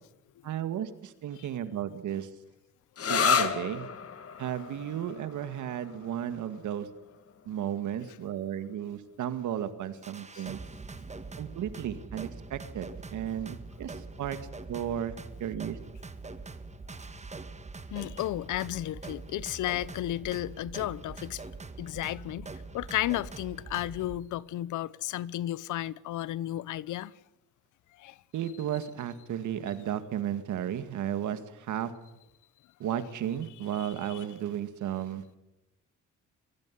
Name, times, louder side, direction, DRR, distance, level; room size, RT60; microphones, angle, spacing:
voice 1, 0.4-2.3 3.1-3.9 4.4-6.9 7.5-10.6 11.4-13.9 14.2-14.4 14.7-15.1 15.4-15.8 28.3-31.9 32.8-35.4, right 10 dB, 75° right, 2.1 m, -34 dB
sound 1, 3.0-10.3, left 7 dB, 50° left, 2.1 m, -34 dB
sound 2, 10.0-24.2, right 3 dB, 25° right, 1.6 m, -43 dB
voice 2, 17.9-21.4 21.8-22.5 22.7-27.1 28.0-28.2 32.9-33.0 33.8-34.2, left 14 dB, 80° left, 0.8 m, -33 dB
23.0 x 15.5 x 10.0 m
cardioid pair, 90°, 30 cm